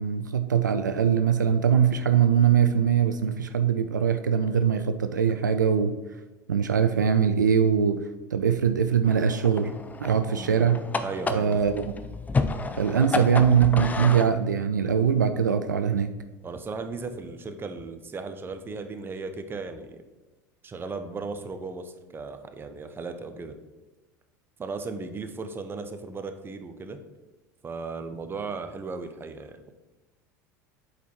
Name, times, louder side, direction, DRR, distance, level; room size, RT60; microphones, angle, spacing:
voice 1, 0.0-5.9 6.5-9.7 10.0-10.8 11.3-11.9 12.8-16.1, right 7 dB, 85° right, 9 dB, 0.4 m, -22 dB
sound 1, 9.0-14.3, left 3 dB, 15° left, 0.6 m, -31 dB
voice 2, 10.4-10.7 11.0-11.6 13.0-13.3 16.4-20.0 20.6-23.5 24.6-27.0 27.6-29.6, right 4 dB, 20° right, 7 dB, 0.9 m, -36 dB
8.3 x 4.2 x 4.6 m, 1.1 s
figure-of-eight pair, 75°, 10 cm